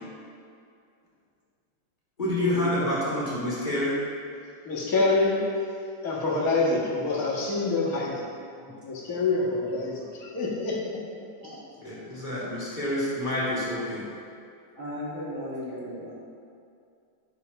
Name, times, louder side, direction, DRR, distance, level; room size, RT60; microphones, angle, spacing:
voice 1, 2.2-4.0 8.6-8.7 11.8-14.1, left 1 dB, 20° left, -8 dB, 2.6 m, -28 dB
voice 2, 4.6-5.8 6.0-8.3 8.8-11.0, left 3 dB, 45° left, -6 dB, 2.0 m, -26 dB
voice 3, 14.7-16.1, equal, 40° right, -9 dB, 3.0 m, -36 dB
8.6 x 6.9 x 5.3 m, 2.4 s
omnidirectional pair, 2.3 m